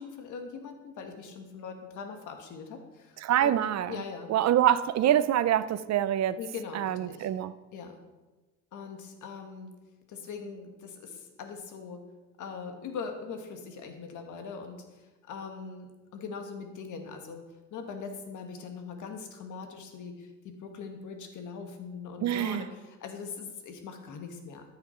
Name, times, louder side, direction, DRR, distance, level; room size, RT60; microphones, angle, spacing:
voice 1, 0.0-3.6 3.9-4.3 6.4-7.3 7.7-8.0 8.7-9.8 10.1-12.1 12.4-24.6, left 5 dB, 75° left, 5 dB, 1.6 m, -41 dB
voice 2, 3.2-4.0 4.3-6.4 6.7-7.5 22.2-22.7, right 11 dB, 60° right, 15 dB, 0.5 m, -25 dB
14.0 x 5.8 x 4.5 m, 1.1 s
cardioid pair, 90°, 30 cm